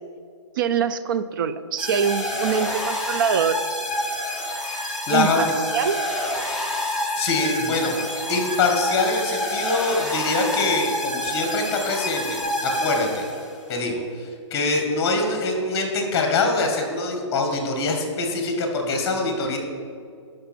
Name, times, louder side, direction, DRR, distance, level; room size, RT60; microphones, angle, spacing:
voice 1, 0.6-3.6 5.1-5.5 5.7-6.0, right 7 dB, 45° right, 12 dB, 0.4 m, -23 dB
sound 1, 1.8-13.6, left 1 dB, ahead, 0.7 m, -28 dB
voice 2, 5.1-5.5 7.1-8.0 8.3-13.2 13.7-19.6, left 3 dB, 20° left, 3 dB, 1.6 m, -24 dB
12.0 x 5.3 x 4.4 m, 2.3 s
hypercardioid pair, 150°, 16 cm